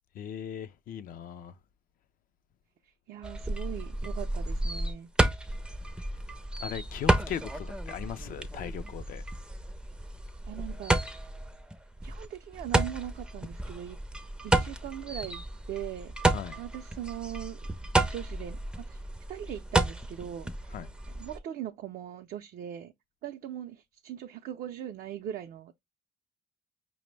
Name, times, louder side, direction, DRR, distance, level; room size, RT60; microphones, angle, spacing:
voice 1, 0.1-1.5 6.6-9.2 16.3-16.6 20.7-20.9, left 9 dB, 55° left, 0.4 m, -38 dB
voice 2, 3.1-5.1 10.5-11.0 12.0-14.0 14.4-15.4 15.7-16.1 16.5-17.6 18.0-19.0 19.3-20.7 21.1-22.9 23.2-25.8, right 11 dB, 60° right, 0.4 m, -40 dB
sound 1, 3.2-21.4, right 1 dB, 5° right, 0.4 m, -31 dB
5.1 x 2.0 x 3.1 m
cardioid pair, 110°, 17 cm